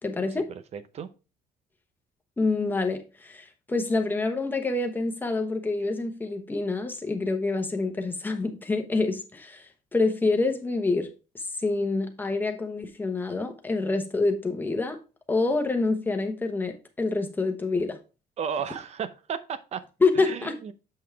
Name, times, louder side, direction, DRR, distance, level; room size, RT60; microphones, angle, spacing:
voice 1, 0.0-0.4 2.4-11.1 11.3-15.0 15.3-18.0 20.0-20.5, left 3 dB, 10° left, 1.0 m, -27 dB
voice 2, 0.7-1.1 18.4-19.8 20.2-20.7, right 7 dB, 40° right, 0.7 m, -33 dB
7.8 x 5.4 x 3.4 m
cardioid pair, 160°, 17 cm